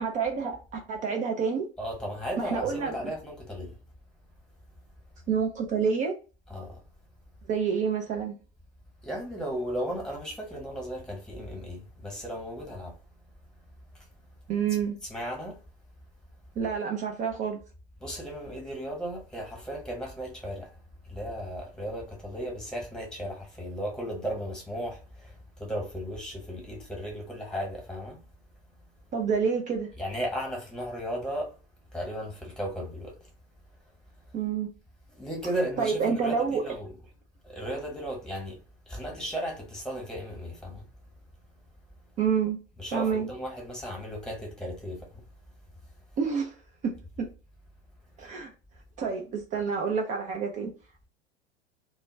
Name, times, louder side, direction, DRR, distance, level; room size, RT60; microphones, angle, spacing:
voice 1, 0.0-1.7 2.4-3.0 5.3-6.1 7.5-8.4 14.5-15.0 16.6-17.6 29.1-29.9 34.3-34.7 35.8-36.7 42.2-42.6 42.9-43.3 46.2-46.5 46.8-47.3 48.2-48.5 49.0-50.7, right 6 dB, 25° right, 0.4 m, -28 dB
voice 2, 1.8-3.8 6.5-6.8 9.0-12.9 13.9-14.0 15.1-15.6 18.0-20.8 21.0-28.2 30.0-31.5 31.9-33.2 35.1-36.9 37.4-38.6 38.9-40.8 42.8-45.2, equal, ahead, 1.1 m, -35 dB
2.3 x 2.1 x 3.0 m
figure-of-eight pair, 85°, 31 cm